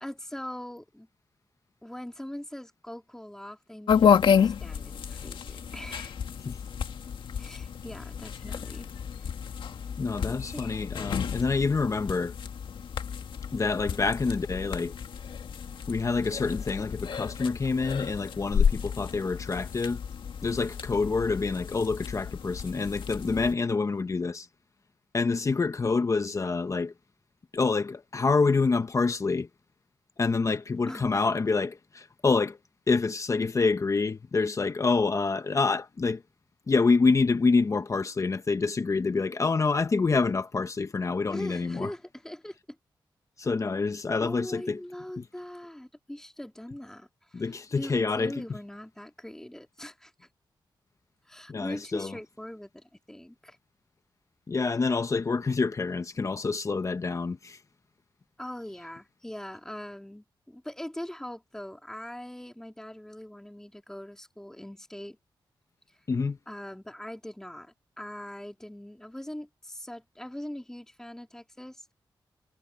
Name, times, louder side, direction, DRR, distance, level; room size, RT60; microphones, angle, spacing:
voice 1, 0.0-1.1 1.8-6.1 7.4-8.9 10.5-10.6 30.9-31.1 41.3-42.6 44.2-50.3 51.3-53.6 58.4-65.2 66.5-71.9, left 1 dB, 5° left, 2.0 m, -41 dB
sound 1, 3.9-23.5, left 7 dB, 80° left, 1.8 m, -30 dB
voice 2, 10.0-12.3 13.5-14.9 15.9-20.0 20.4-24.5 25.1-26.9 27.5-29.5 30.2-32.6 32.9-36.2 36.7-41.9 43.4-44.8 47.3-48.3 51.5-52.1 54.5-57.6 66.1-66.4, left 4 dB, 40° left, 0.9 m, -27 dB
cardioid pair, 90°, 8 cm